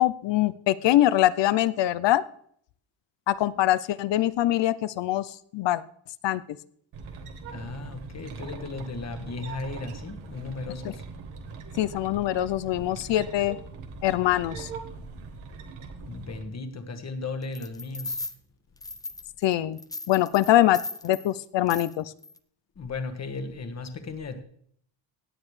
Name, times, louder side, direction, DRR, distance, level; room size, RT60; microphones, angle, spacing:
voice 1, 0.0-2.2 3.3-5.8 6.2-6.4 10.8-10.9 11.8-13.6 14.0-14.7 19.4-19.8 20.1-22.1, left 14 dB, 60° left, 17 dB, 0.6 m, -23 dB
sound 1, 6.9-16.4, right 4 dB, 80° right, 1.8 m, -41 dB
voice 2, 7.5-11.0 16.1-18.2 22.7-24.4, left 3 dB, 30° left, 7 dB, 1.4 m, -36 dB
sound 2, 17.5-18.3 18.8-19.5 19.8-21.3 21.7-21.9 22.2-22.4, left 2 dB, 10° left, 0.5 m, -37 dB
17.0 x 8.9 x 3.2 m, 0.64 s
cardioid pair, 140°, 49 cm